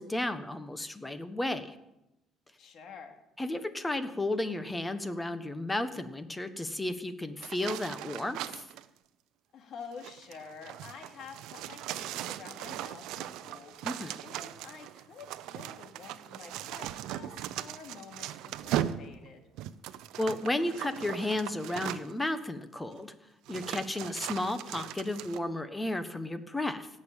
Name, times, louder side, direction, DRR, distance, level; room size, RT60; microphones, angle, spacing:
voice 1, 0.0-1.7 3.4-8.6 13.8-14.2 20.2-23.1 23.5-26.9, left 1 dB, 10° left, 11 dB, 1.1 m, -33 dB
voice 2, 2.6-3.1 9.5-13.8 14.2-19.4, left 5 dB, 55° left, 4 dB, 2.6 m, -48 dB
sound 1, 7.4-8.9 9.9-22.3 23.0-23.1 23.5-25.4, right 12 dB, 75° right, 0.7 m, -39 dB
16.5 x 6.5 x 8.9 m, 0.90 s
cardioid pair, 120°, 0 cm